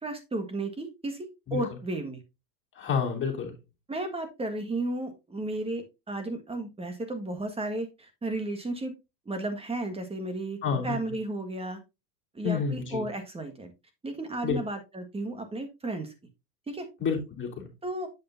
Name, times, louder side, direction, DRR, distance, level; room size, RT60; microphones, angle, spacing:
voice 1, 0.0-2.2 3.9-8.9 9.2-11.8 12.3-13.7 14.0-16.1 16.7-16.9 17.8-18.1, right 2 dB, 10° right, 1.7 m, -33 dB
voice 2, 2.7-3.6 10.6-11.0 12.4-13.0 14.4-14.6 17.0-17.7, left 6 dB, 25° left, 3.1 m, -29 dB
8.3 x 6.6 x 2.7 m
supercardioid pair, 115°, 47 cm